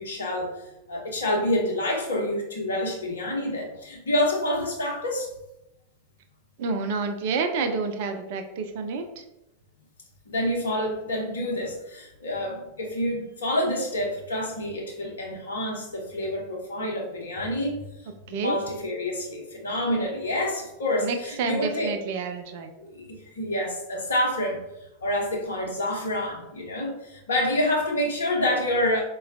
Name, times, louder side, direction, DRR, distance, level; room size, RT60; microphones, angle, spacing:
voice 1, 0.0-5.3 10.3-17.8 18.3-21.9 22.8-24.6 25.0-29.0, left 1 dB, 70° left, 0 dB, 0.8 m, -28 dB
voice 2, 6.6-9.2 18.3-18.6 21.0-22.7, right 4 dB, 50° right, 6 dB, 0.3 m, -29 dB
4.2 x 2.2 x 2.4 m, 0.88 s
figure-of-eight pair, 90°, 0 cm